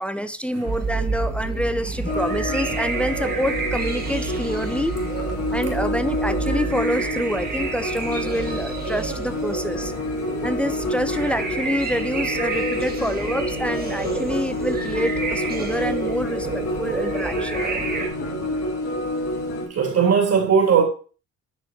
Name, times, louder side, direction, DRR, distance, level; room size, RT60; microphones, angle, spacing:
voice 1, 0.0-5.0 5.5-9.9 10.4-17.7, equal, 5° left, 0.6 m, -27 dB
sound 1, 0.6-18.1, right 4 dB, 30° right, 2.0 m, -29 dB
sound 2, 2.1-19.7, left 1 dB, 55° left, 3.4 m, -28 dB
voice 2, 19.7-20.8, right 6 dB, 55° right, 2.8 m, -19 dB
10.5 x 4.1 x 4.1 m
cardioid pair, 90°, 30 cm